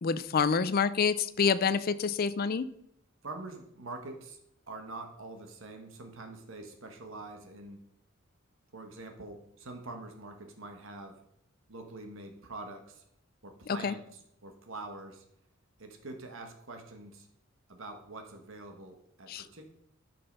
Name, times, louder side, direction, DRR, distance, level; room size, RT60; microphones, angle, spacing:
voice 1, 0.0-2.7 13.7-13.9 19.3-19.5, left 5 dB, 45° left, 14 dB, 0.5 m, -27 dB
voice 2, 3.2-4.4 4.7-7.8 8.7-11.2 11.7-13.0 13.4-15.2 15.8-17.3 17.7-19.7, right 2 dB, 70° right, 5 dB, 1.5 m, -45 dB
10.5 x 6.0 x 5.4 m, 0.75 s
head